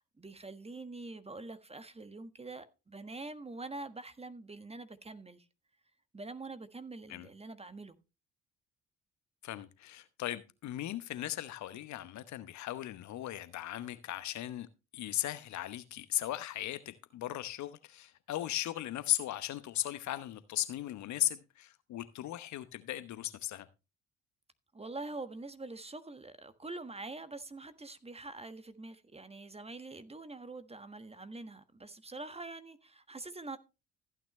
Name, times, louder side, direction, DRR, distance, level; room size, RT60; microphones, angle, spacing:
voice 1, 0.0-5.4 6.1-7.9 24.7-33.6, right 3 dB, 15° right, 1.4 m, -45 dB
voice 2, 9.4-14.7 14.9-23.7, left 13 dB, 50° left, 1.0 m, -37 dB
15.0 x 9.1 x 3.2 m
figure-of-eight pair, 50°, 37 cm